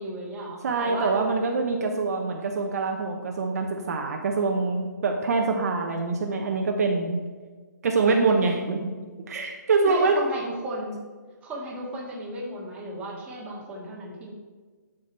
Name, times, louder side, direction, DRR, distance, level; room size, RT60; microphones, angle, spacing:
voice 1, 0.0-1.2 9.9-11.0 11.4-14.3, right 1 dB, 15° right, -4 dB, 1.9 m, -35 dB
voice 2, 0.6-7.2 7.8-10.1, right 4 dB, 55° right, 2 dB, 1.0 m, -25 dB
12.0 x 5.1 x 4.4 m, 1.4 s
hypercardioid pair, 150°, 10 cm